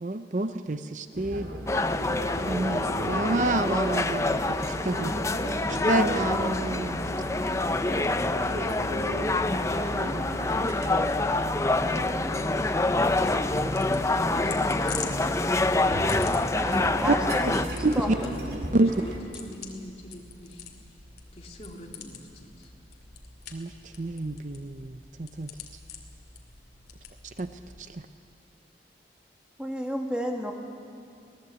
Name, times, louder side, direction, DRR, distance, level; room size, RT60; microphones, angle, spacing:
voice 1, 0.0-1.5 2.5-5.1 5.7-7.0 17.1-17.2 17.8-18.2 18.7-18.9 23.5-23.7 24.0-25.5 27.4-27.5 27.9-28.0, right 2 dB, 45° right, 9 dB, 0.6 m, -28 dB
sound 1, 1.1-19.2, equal, 65° right, 3.0 m, -35 dB
sound 2, 1.7-17.7, left 2 dB, 15° left, 0.5 m, -27 dB
sound 3, 12.8-28.0, left 6 dB, 70° left, 2.4 m, -45 dB
voice 2, 14.1-15.4 18.1-18.4 18.7-20.9 21.3-22.7, equal, 35° left, -1 dB, 2.9 m, -44 dB
voice 3, 16.6-17.7 18.0-18.3 29.6-30.5, equal, 5° right, 1 dB, 1.9 m, -31 dB
24.0 x 18.0 x 8.2 m, 2.4 s
head